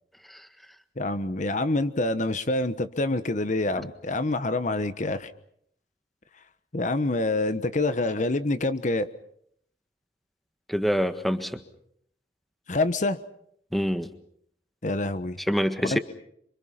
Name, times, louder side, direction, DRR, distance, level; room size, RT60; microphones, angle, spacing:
voice 1, 1.0-5.3 6.7-9.1 12.7-13.2 14.8-15.4 15.8-16.0, left 2 dB, 45° left, 11 dB, 1.1 m, -26 dB
voice 2, 10.7-11.6 13.7-14.1 15.5-16.0, equal, ahead, 9 dB, 1.6 m, -25 dB
29.0 x 26.0 x 5.8 m, 0.69 s
head